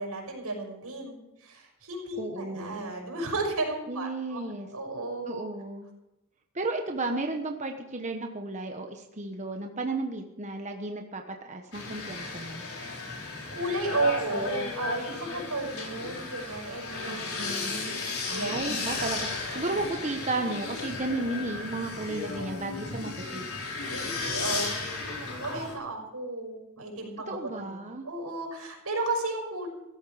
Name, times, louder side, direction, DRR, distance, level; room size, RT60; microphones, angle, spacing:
voice 1, 0.0-5.5 13.2-17.3 17.6-18.0 18.3-18.5 23.9-24.8 25.1-27.7 28.0-29.7, right 2 dB, 85° right, 1 dB, 5.9 m, -33 dB
voice 2, 2.2-2.8 3.9-4.7 5.3-5.9 6.5-12.6 17.0-17.7 18.2-23.5 27.3-28.1, right 2 dB, 35° right, 3 dB, 1.2 m, -34 dB
sound 1, 11.7-25.7, left 3 dB, 70° left, 4.8 m, -35 dB
17.0 x 13.5 x 5.0 m, 0.93 s
head